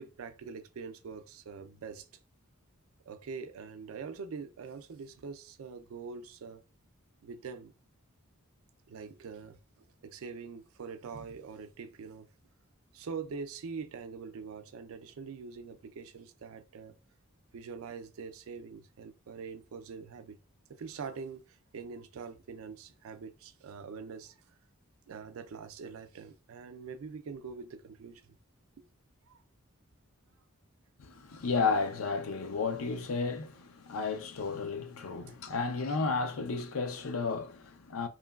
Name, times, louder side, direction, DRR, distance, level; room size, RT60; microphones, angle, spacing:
voice 1, 0.0-2.2 3.1-6.6 7.2-7.7 8.9-9.6 10.0-12.3 12.9-17.0 17.5-20.4 20.7-24.3 25.1-28.3 28.8-28.9 29.3-29.4, right 5 dB, 75° right, 0.4 m, -44 dB
voice 2, 31.0-38.1, left 4 dB, 70° left, 0.5 m, -33 dB
3.1 x 2.2 x 2.3 m
head